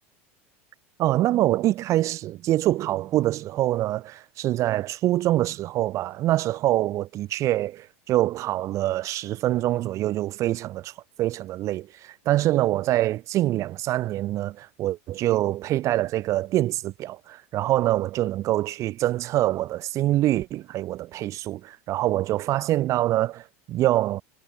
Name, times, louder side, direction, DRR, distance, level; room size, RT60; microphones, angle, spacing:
voice 1, 1.0-10.9 11.2-24.2, right 15 dB, 45° right, 1.7 m, -25 dB
supercardioid pair, 105°, 7 cm